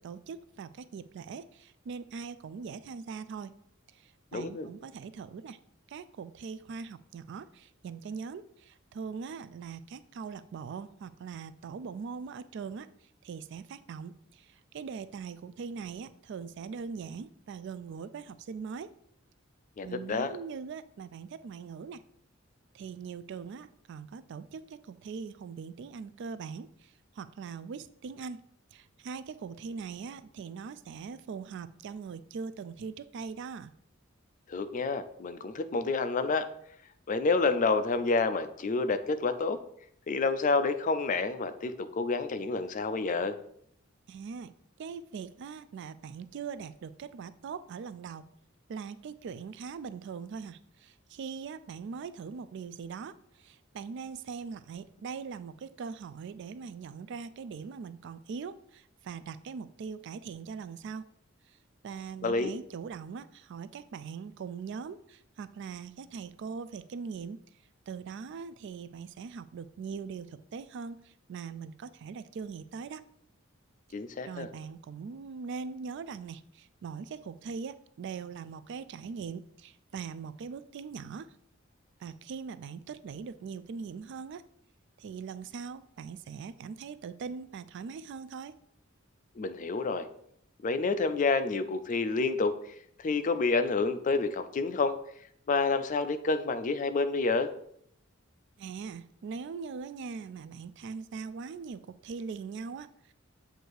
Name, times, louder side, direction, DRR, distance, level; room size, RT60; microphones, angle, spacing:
voice 1, 0.0-3.6 3.9-5.6 5.9-12.9 13.2-18.9 19.8-22.0 22.7-28.4 28.7-33.7 44.1-44.5 44.8-48.2 48.7-61.1 61.5-61.6 61.8-67.4 67.9-73.0 74.2-81.3 82.0-84.4 85.0-88.6 98.6-103.1, right 5 dB, 60° right, 14 dB, 0.3 m, -41 dB
voice 2, 4.3-4.7 19.8-20.3 34.5-36.5 37.1-39.6 40.1-43.3 62.2-62.5 73.9-74.5 89.4-90.1 90.6-92.5 93.0-95.0 95.5-97.5, left 3 dB, 40° left, 10 dB, 0.4 m, -28 dB
7.7 x 2.7 x 4.6 m, 0.69 s
head